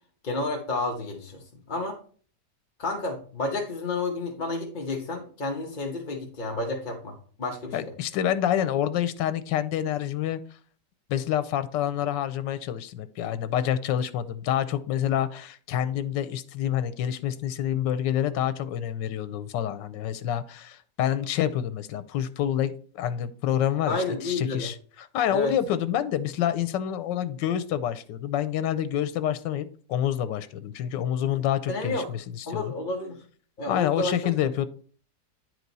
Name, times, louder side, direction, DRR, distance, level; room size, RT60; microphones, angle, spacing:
voice 1, 0.2-1.4 1.7-1.9 2.8-7.9 23.9-24.7 25.3-25.5 31.3-31.4 31.7-32.1 32.5-33.2 33.6-34.1, left 2 dB, 35° left, 0 dB, 0.9 m, -30 dB
voice 2, 7.7-10.4 11.1-32.7 33.7-34.7, left 10 dB, 90° left, 13 dB, 1.3 m, -27 dB
10.0 x 4.6 x 4.0 m, 0.44 s
omnidirectional pair, 1.9 m